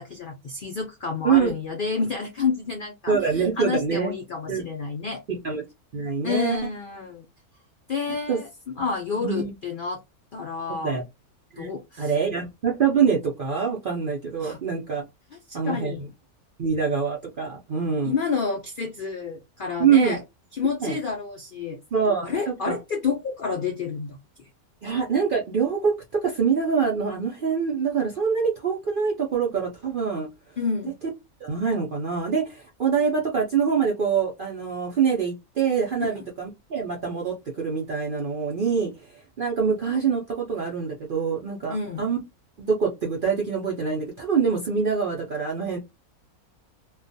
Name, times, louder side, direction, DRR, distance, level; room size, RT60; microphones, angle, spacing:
voice 1, 0.0-5.2 6.2-7.3 7.9-8.5 8.8-10.0 10.3-11.0 11.6-12.1 14.4-14.6 15.5-16.0 18.0-20.2 20.5-21.8 22.2-24.2 30.6-30.9 36.1-36.2 41.7-42.0, left 5 dB, 85° left, 2 dB, 0.4 m, -29 dB
voice 2, 3.1-4.1 4.5-4.6 5.3-5.6 5.9-6.6 8.3-8.4 9.2-9.5 10.8-11.0 11.5-11.7 12.0-15.0 15.5-16.1 16.6-18.1 19.8-20.2 20.8-21.0 21.9-22.7 24.8-30.3 31.4-38.9 39.4-42.2 42.6-45.8, right 6 dB, 60° right, -1 dB, 0.5 m, -25 dB
2.4 x 2.2 x 2.5 m, 0.21 s
omnidirectional pair, 1.6 m